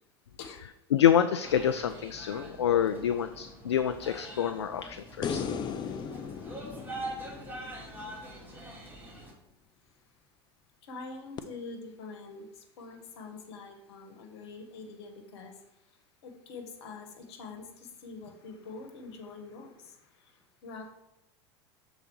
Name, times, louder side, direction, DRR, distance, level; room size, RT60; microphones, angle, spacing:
voice 1, 0.9-5.4, left 9 dB, 85° left, 9 dB, 0.4 m, -27 dB
sound 1, 1.4-9.3, right 1 dB, 15° right, 2.0 m, -44 dB
sound 2, 5.2-8.5 11.4-11.5, left 6 dB, 30° left, 0.6 m, -37 dB
voice 2, 10.8-15.5 16.2-20.0 20.6-20.9, left 4 dB, 70° left, 6 dB, 1.3 m, -45 dB
6.8 x 4.0 x 6.3 m, 0.87 s
hypercardioid pair, 85°, 14 cm